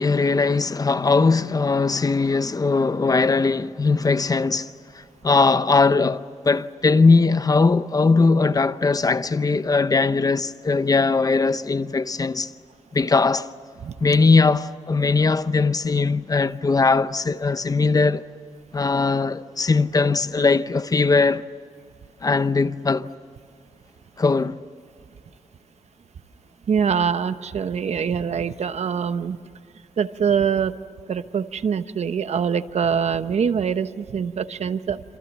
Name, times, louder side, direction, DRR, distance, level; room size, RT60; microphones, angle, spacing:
voice 1, 0.0-4.7 4.9-12.5 12.9-13.5 14.0-18.2 18.7-21.5 22.2-23.1 24.2-24.6, left 4 dB, 30° left, 0.7 m, -20 dB
voice 2, 26.7-29.4 30.0-30.8 31.1-35.0, right 7 dB, 65° right, 1.0 m, -24 dB
27.5 x 27.0 x 7.3 m
wide cardioid pair, 115°, 12 cm